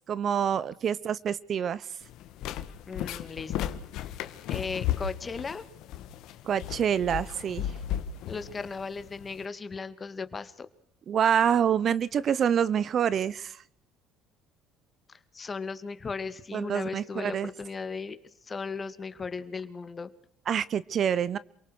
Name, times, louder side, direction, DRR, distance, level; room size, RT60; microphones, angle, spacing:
voice 1, 0.1-1.8 6.5-7.6 11.1-13.6 16.5-17.5 20.5-21.4, right 8 dB, 50° right, 19 dB, 0.8 m, -26 dB
sound 1, 2.0-9.4, left 11 dB, 70° left, 1.6 m, -35 dB
voice 2, 2.9-3.7 4.0-4.1 4.5-5.7 8.3-10.7 15.1-18.2 18.4-20.1, left 4 dB, 30° left, 11 dB, 2.2 m, -36 dB
28.5 x 18.5 x 6.4 m, 0.68 s
supercardioid pair, 80°, 0 cm